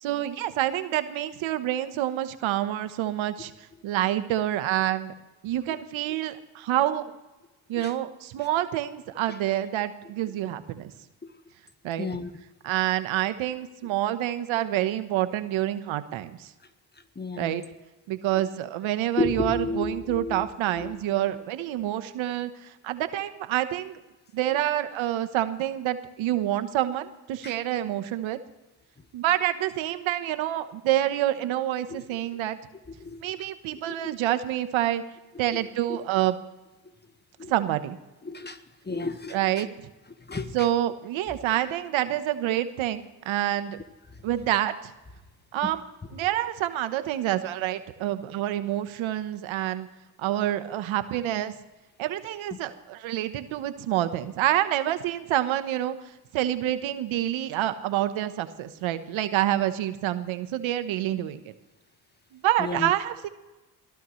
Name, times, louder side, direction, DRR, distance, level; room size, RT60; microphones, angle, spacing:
voice 1, 0.0-3.5 3.8-5.1 5.4-7.0 7.7-10.9 11.8-12.1 12.6-16.5 17.4-17.6 18.1-24.0 24.3-28.4 29.1-32.6 33.2-35.0 35.4-36.4 37.5-38.0 39.3-39.9 40.5-43.8 44.2-44.9 45.5-45.8 46.1-49.9 50.2-51.5 52.0-56.0 56.3-61.4 62.3-63.3, right 13 dB, 80° right, 1.2 m, -27 dB
voice 2, 12.0-12.3 17.1-17.6 19.2-21.0 27.4-27.6 31.9-32.2 33.0-33.5 33.9-34.1 35.9-36.0 37.4-37.5 38.2-39.7 40.2-40.7 41.6-41.7 44.1-44.2 45.6-45.7 52.5-52.6 62.6-62.9, left 3 dB, 20° left, 1.4 m, -33 dB
23.5 x 16.5 x 3.2 m
supercardioid pair, 65°, 46 cm